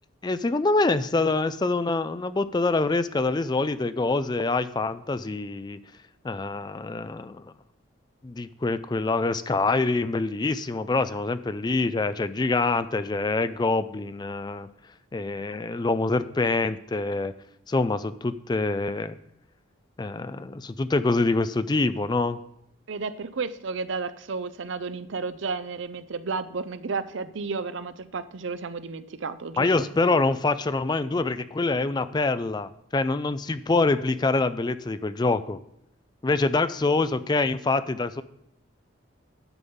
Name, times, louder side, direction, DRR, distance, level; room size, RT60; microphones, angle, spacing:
voice 1, 0.2-5.8 6.2-7.4 8.2-14.7 15.1-17.3 17.7-19.2 20.0-22.4 29.6-35.6 36.2-38.2, left 3 dB, 20° left, 13 dB, 0.4 m, -25 dB
voice 2, 22.9-29.7, right 4 dB, 70° right, 13 dB, 0.6 m, -32 dB
9.9 x 5.5 x 7.0 m, 0.77 s
head